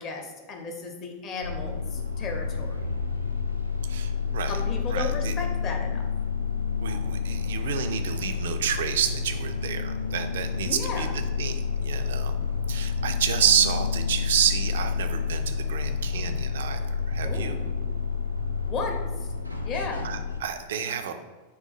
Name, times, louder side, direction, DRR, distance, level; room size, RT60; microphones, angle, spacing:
voice 1, 0.0-2.9 4.5-6.1 10.6-11.1 17.2-17.7 18.7-19.3 19.6-20.1, left 3 dB, 35° left, 3 dB, 0.7 m, -35 dB
sound 1, 1.4-20.4, left 5 dB, 90° left, 0.4 m, -29 dB
voice 2, 3.9-4.5 4.9-5.3 6.8-11.1 11.4-12.3 12.7-16.8 17.1-17.6 20.0-21.1, right 8 dB, 60° right, 7 dB, 0.3 m, -29 dB
sound 2, 6.8-16.5, right 2 dB, 80° right, 0.7 m, -45 dB
3.9 x 2.2 x 4.1 m, 1.2 s
figure-of-eight pair, 90°, 0 cm